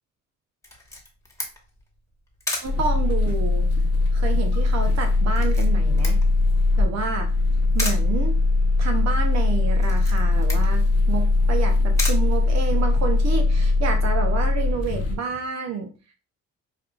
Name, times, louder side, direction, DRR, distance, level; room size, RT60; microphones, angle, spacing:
Camera, 0.6-13.1, left 2 dB, 10° left, 1.1 m, -36 dB
sound 1, 2.6-15.2, left 3 dB, 55° left, 0.8 m, -20 dB
voice 1, 2.6-3.7 4.1-6.2 6.8-7.3 7.7-8.4 8.8-15.9, right 5 dB, 60° right, 5 dB, 0.6 m, -29 dB
5.2 x 2.4 x 2.3 m, 0.34 s
cardioid pair, 90°, 30 cm